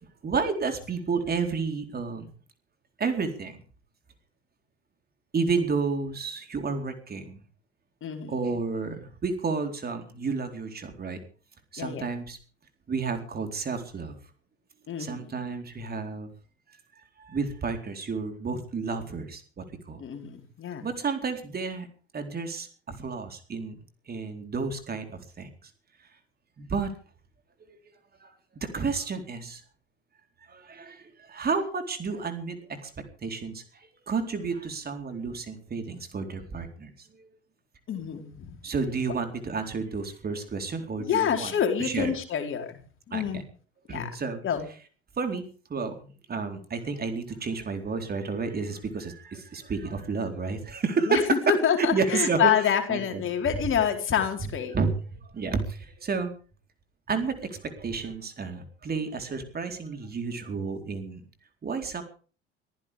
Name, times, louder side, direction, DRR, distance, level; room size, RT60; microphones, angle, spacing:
voice 1, 0.2-2.3 3.0-3.6 5.3-7.4 8.3-11.2 11.7-12.4 12.9-14.2 15.0-16.3 16.7-16.8 17.2-20.0 20.8-21.9 22.1-23.8 24.1-25.7 26.6-26.9 28.2-28.3 28.6-29.6 30.5-32.9 33.2-37.3 38.6-41.5 41.8-42.1 43.1-43.4 43.9-44.4 45.2-51.2 51.8-52.5 52.9-53.2 54.7-54.9 55.3-56.3 57.1-61.2 61.6-62.0, right 4 dB, 30° right, 6 dB, 4.2 m, -31 dB
voice 2, 8.0-8.3 11.8-12.0 14.9-15.3 20.0-20.9 37.9-38.6 41.0-42.8 43.1-43.4 43.9-44.1 44.4-44.7 51.1-54.7, left 8 dB, 40° left, 5 dB, 4.5 m, -27 dB
24.5 x 15.5 x 3.6 m, 0.40 s
figure-of-eight pair, 65°, 31 cm